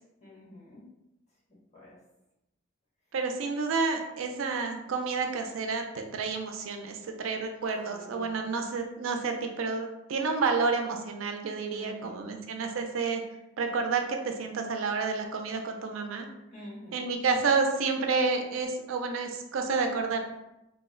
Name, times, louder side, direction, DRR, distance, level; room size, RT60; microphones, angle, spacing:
voice 1, 0.2-0.9 1.7-2.0 7.9-8.4 11.7-12.3 16.5-17.1, left 1 dB, 35° left, -8 dB, 1.4 m, -47 dB
voice 2, 3.1-13.2 13.6-16.3 16.9-20.2, right 4 dB, 85° right, 4 dB, 0.4 m, -30 dB
2.9 x 2.0 x 3.6 m, 0.92 s
head